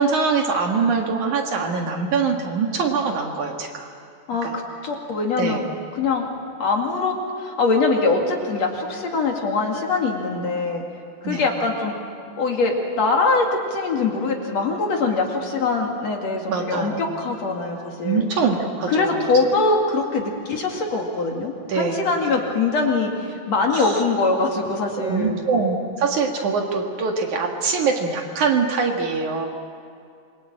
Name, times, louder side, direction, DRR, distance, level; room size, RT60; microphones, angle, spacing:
voice 1, 0.0-3.9 4.4-4.5 5.4-5.6 11.2-11.5 16.5-17.0 18.0-19.3 21.7-22.0 23.7-24.0 25.0-29.5, right 5 dB, 60° right, 2 dB, 3.1 m, -23 dB
voice 2, 4.3-5.6 5.9-6.3 6.6-10.8 11.2-11.9 12.4-18.2 18.9-25.4, left 3 dB, 50° left, 1 dB, 3.3 m, -23 dB
27.0 x 22.5 x 8.8 m, 2.4 s
omnidirectional pair, 4.1 m